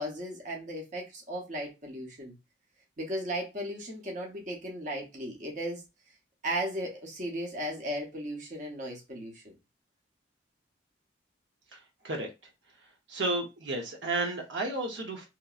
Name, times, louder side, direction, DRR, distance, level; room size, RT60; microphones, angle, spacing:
voice 1, 0.0-2.3 3.0-5.8 6.4-9.5, equal, 45° right, 0.8 m, -36 dB
voice 2, 11.7-12.3 13.1-15.3, right 2 dB, 75° right, 0.7 m, -32 dB
2.9 x 2.6 x 2.4 m
head